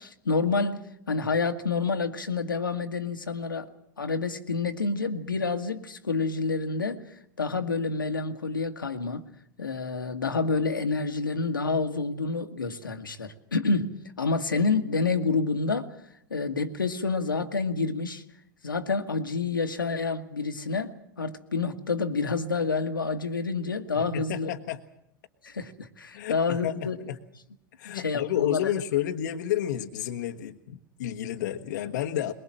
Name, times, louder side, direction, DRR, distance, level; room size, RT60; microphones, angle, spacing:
voice 1, 0.0-3.7 4.0-9.3 9.6-15.9 16.3-18.2 18.6-24.5 25.4-27.0 27.9-28.7, left 4 dB, 85° left, 6 dB, 1.7 m, -28 dB
voice 2, 24.0-24.8 26.1-27.2 27.8-32.3, left 11 dB, 60° left, 6 dB, 1.3 m, -31 dB
22.5 x 22.0 x 7.6 m, 0.75 s
figure-of-eight pair, 90°, 11 cm